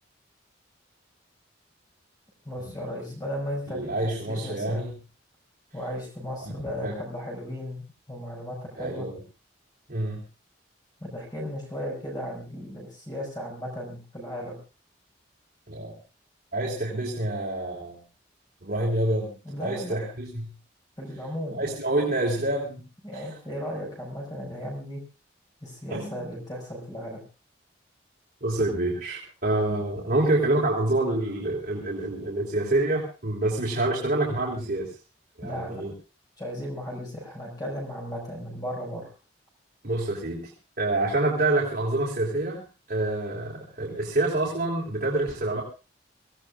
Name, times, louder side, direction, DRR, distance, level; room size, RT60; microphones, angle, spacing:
voice 1, 2.5-3.9 4.3-4.8 5.7-9.1 11.0-14.6 19.4-20.0 21.0-21.6 23.0-25.0 25.6-27.2 35.4-35.8 36.4-39.1, equal, 20° left, -1 dB, 5.5 m, -35 dB
voice 2, 3.7-4.9 6.4-7.0 8.8-9.2 9.9-10.2 15.7-15.9 16.5-18.0 18.6-20.5 21.5-22.8 23.1-23.4 25.9-26.3 28.4-34.9 35.4-35.9 39.8-45.6, right 2 dB, 50° right, -4 dB, 3.8 m, -27 dB
25.5 x 17.5 x 2.5 m, 0.32 s
head